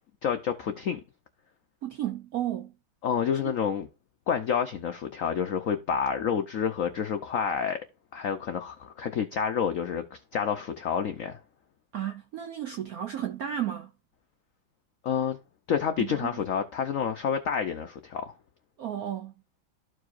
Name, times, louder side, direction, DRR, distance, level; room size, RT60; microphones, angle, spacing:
voice 1, 0.2-1.0 3.0-3.9 4.3-7.8 8.1-11.4 15.0-15.4 15.7-18.3, left 7 dB, 85° left, 0.7 m, -29 dB
voice 2, 1.8-2.7 3.4-3.5 11.9-13.9 16.0-16.4 18.8-19.3, right 11 dB, 75° right, 0.8 m, -33 dB
13.5 x 4.8 x 2.5 m
omnidirectional pair, 2.3 m